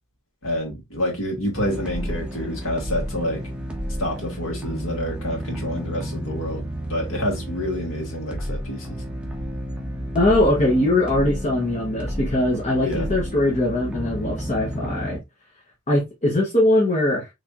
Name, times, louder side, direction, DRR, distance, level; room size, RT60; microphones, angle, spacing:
voice 1, 0.4-3.4 4.0-9.0 12.8-13.1, left 1 dB, 70° left, 1.8 m, -28 dB
sound 1, 1.5-15.2, equal, 5° right, 0.8 m, -31 dB
voice 2, 10.1-15.2 15.9-17.3, left 1 dB, 35° left, 0.9 m, -21 dB
4.3 x 3.2 x 2.4 m
head